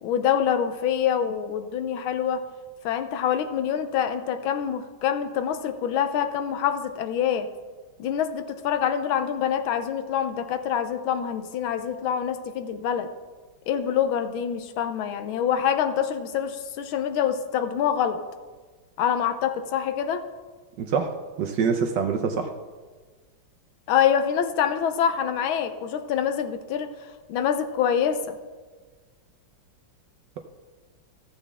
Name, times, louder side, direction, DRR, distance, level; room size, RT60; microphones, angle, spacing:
voice 1, 0.0-2.4 2.8-7.5 8.0-13.1 13.7-18.2 19.0-20.2 23.9-26.9 27.3-28.4, left 8 dB, 75° left, 8 dB, 1.5 m, -25 dB
voice 2, 20.8-22.5 30.4-30.5, right 6 dB, 70° right, 5 dB, 1.1 m, -25 dB
14.5 x 7.2 x 3.4 m, 1.4 s
omnidirectional pair, 2.3 m